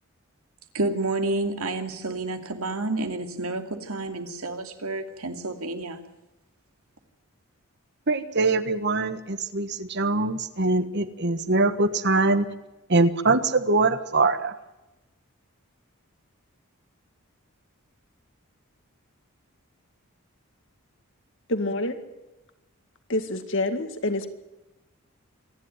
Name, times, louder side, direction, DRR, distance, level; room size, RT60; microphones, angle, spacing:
voice 1, 0.7-6.0, right 2 dB, 85° right, 6 dB, 2.5 m, -29 dB
voice 2, 8.1-12.5 12.9-14.5, right 3 dB, 50° right, 12 dB, 1.4 m, -23 dB
voice 3, 21.5-21.9 23.1-24.3, left 2 dB, 60° left, 8 dB, 2.1 m, -27 dB
27.0 x 11.0 x 9.2 m, 1.0 s
head